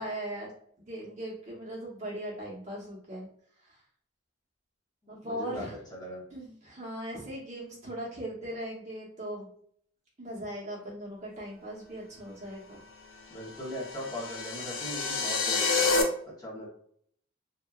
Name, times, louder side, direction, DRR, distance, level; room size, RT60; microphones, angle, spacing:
voice 1, 0.0-3.3 3.6-3.8 5.1-5.8 6.3-9.5 10.2-12.8, right 1 dB, 35° right, -5 dB, 0.9 m, -39 dB
voice 2, 5.2-5.6 5.9-6.2 13.3-16.1 16.4-16.7, equal, 20° left, -5 dB, 0.8 m, -39 dB
sound 1, 13.5-16.0, left 4 dB, 80° left, 0.5 m, -29 dB
2.8 x 2.3 x 2.3 m, 0.63 s
head